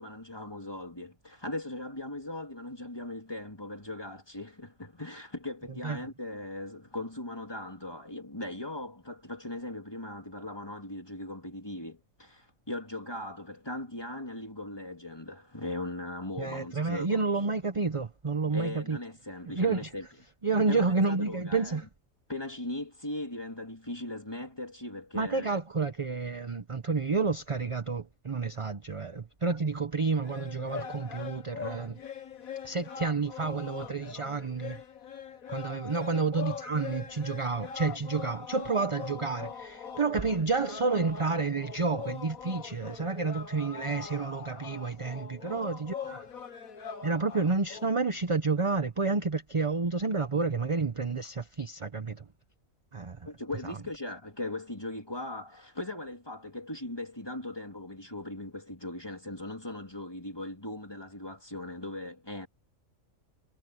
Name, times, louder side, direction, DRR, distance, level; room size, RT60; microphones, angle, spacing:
voice 1, 0.0-17.2 18.5-20.1 20.7-21.8 22.3-25.6 45.4-45.6 53.3-62.5, left 1 dB, 15° left, 3.5 m, -39 dB
voice 2, 16.4-19.0 19.5-19.9 20.4-21.9 25.1-32.0 32.6-34.8 35.5-46.3 47.0-52.2 52.9-53.3, right 4 dB, 30° right, 0.8 m, -30 dB
sound 1, 30.2-47.9, left 7 dB, 90° left, 1.9 m, -42 dB
omnidirectional pair, 1.4 m